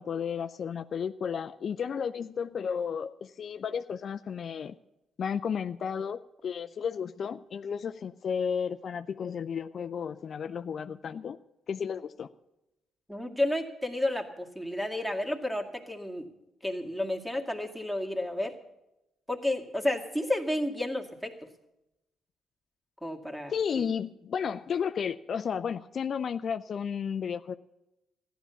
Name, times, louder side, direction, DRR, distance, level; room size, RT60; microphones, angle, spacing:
voice 1, 0.0-4.7 5.2-11.4 11.7-12.3 23.5-27.5, left 7 dB, 60° left, 10 dB, 0.4 m, -33 dB
voice 2, 13.1-16.3 16.6-18.6 19.3-21.3 23.0-23.9, left 1 dB, 5° right, 3 dB, 2.1 m, -31 dB
14.5 x 11.0 x 6.9 m, 0.93 s
supercardioid pair, 60°, 0 cm